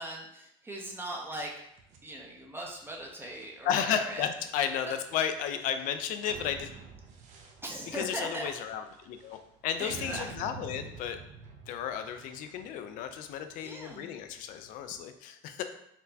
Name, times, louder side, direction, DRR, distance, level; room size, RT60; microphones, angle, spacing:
voice 1, 0.0-1.5 2.0-4.2 4.8-5.0 7.6-8.5 9.8-10.3 13.6-14.1, right 1 dB, 15° right, -1 dB, 0.6 m, -39 dB
sound 1, 1.7-15.0, right 5 dB, 55° right, 0.6 m, -50 dB
voice 2, 3.6-6.7 7.9-9.4 9.6-11.2 11.7-15.6, left 8 dB, 65° left, 8 dB, 0.4 m, -33 dB
4.2 x 2.1 x 2.7 m, 0.75 s
supercardioid pair, 95°, 14 cm